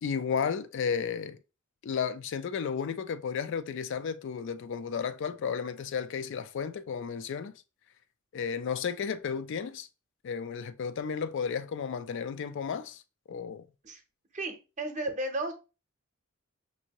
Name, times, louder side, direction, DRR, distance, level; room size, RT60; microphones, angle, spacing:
voice 1, 0.0-1.4 1.8-7.6 8.3-9.9 10.2-13.0 13.3-13.6, left 6 dB, 60° left, 0.3 m, -33 dB
voice 2, 14.3-15.5, right 2 dB, 35° right, 0.7 m, -33 dB
5.3 x 2.7 x 2.9 m
head